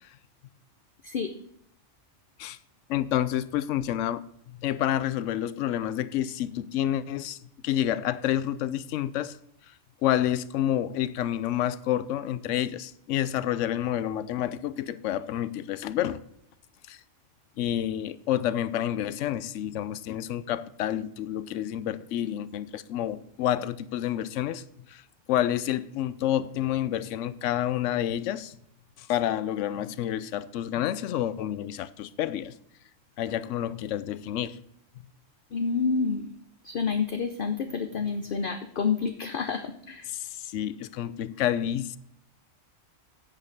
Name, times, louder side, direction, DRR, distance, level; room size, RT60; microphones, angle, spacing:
voice 1, 2.9-7.4 7.6-9.4 10.0-16.2 16.9-17.0 17.6-24.6 24.9-25.0 25.3-28.6 29.0-32.5 33.2-34.6 37.7-37.9 40.1-42.0, left 11 dB, 80° left, 0.9 m, -29 dB
voice 2, 35.5-36.3 36.6-40.1, left 5 dB, 50° left, 0.7 m, -29 dB
8.9 x 5.3 x 6.5 m
omnidirectional pair, 1.3 m